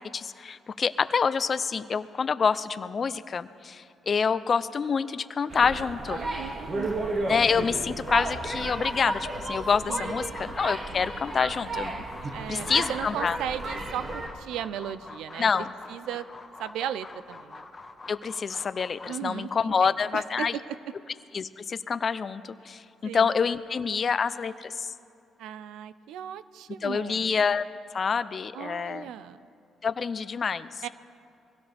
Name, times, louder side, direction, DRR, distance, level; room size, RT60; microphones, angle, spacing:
voice 1, 0.1-6.2 7.3-12.0 12.5-13.4 15.4-15.7 18.1-20.6 21.3-24.9 26.8-27.7 27.9-29.1 29.8-30.9, left 5 dB, 45° left, 14 dB, 0.6 m, -27 dB
sound 1, 5.5-14.3, right 2 dB, 40° right, 2.0 m, -33 dB
voice 2, 6.1-6.9 9.9-10.4 12.3-15.4 15.9-16.3 16.6-17.6 19.1-20.8 23.0-23.3 25.4-27.3 28.5-29.5 30.8-30.9, right 10 dB, 85° right, 15 dB, 0.5 m, -36 dB
sound 2, 10.0-19.3, left 3 dB, 25° left, 1.4 m, -45 dB
23.0 x 17.0 x 3.5 m, 2.6 s
cardioid pair, 90°, 0 cm